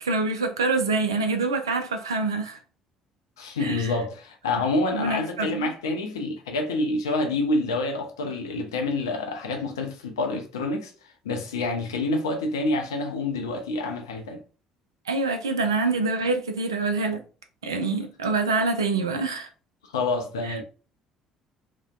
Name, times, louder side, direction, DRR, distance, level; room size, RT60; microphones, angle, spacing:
voice 1, 0.0-2.6 3.6-4.0 4.9-5.7 15.1-17.2 17.6-19.5 20.4-20.5, right 3 dB, 80° right, 0.3 m, -26 dB
voice 2, 3.4-10.9 11.2-14.4 19.9-20.6, left 2 dB, 75° left, 0.4 m, -27 dB
2.6 x 2.1 x 2.3 m
figure-of-eight pair, 55°, 2 cm